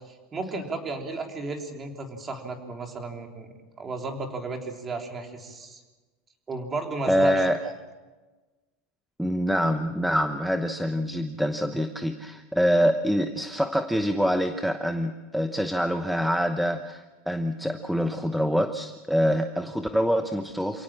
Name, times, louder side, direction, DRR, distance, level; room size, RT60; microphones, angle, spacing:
voice 1, 0.1-5.8 6.5-7.5, right 3 dB, 20° right, 3 dB, 3.4 m, -34 dB
voice 2, 7.1-7.6 9.2-20.8, equal, ahead, 7 dB, 0.9 m, -25 dB
28.0 x 17.5 x 7.5 m, 1.2 s
supercardioid pair, 155°, 0 cm